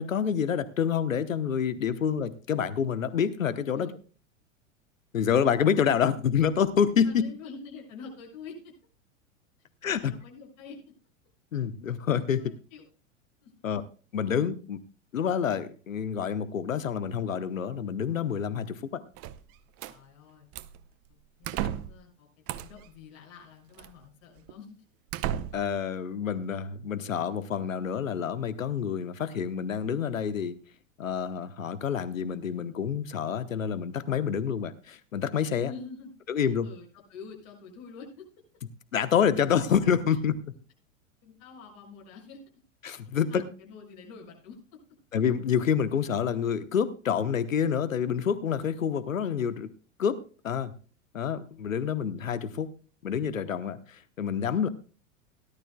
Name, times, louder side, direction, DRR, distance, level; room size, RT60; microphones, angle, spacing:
voice 1, 0.0-3.9 5.1-7.2 9.8-10.1 11.5-12.5 13.6-13.8 14.1-14.8 15.1-19.0 25.5-30.6 31.0-35.7 36.3-36.7 38.9-40.4 42.8-43.4 45.1-49.7 50.0-50.2 50.4-50.7 51.1-52.7 53.0-54.7, left 7 dB, 75° left, 13 dB, 1.1 m, -27 dB
voice 2, 7.0-8.7 9.9-10.8 12.4-12.9 13.4-13.7 19.9-20.5 21.1-22.3 22.5-24.8 35.6-36.1 36.6-38.2 40.1-40.2 41.2-42.4 43.1-44.6, left 5 dB, 50° left, 0 dB, 6.7 m, -46 dB
sound 1, 19.2-20.0 20.5-20.8 21.4-22.0 22.5-22.9 23.8-23.9 24.5-24.6 25.1-25.8, right 11 dB, 35° right, 0.7 m, -34 dB
17.5 x 11.5 x 2.3 m, 0.37 s
figure-of-eight pair, 90°, 40 cm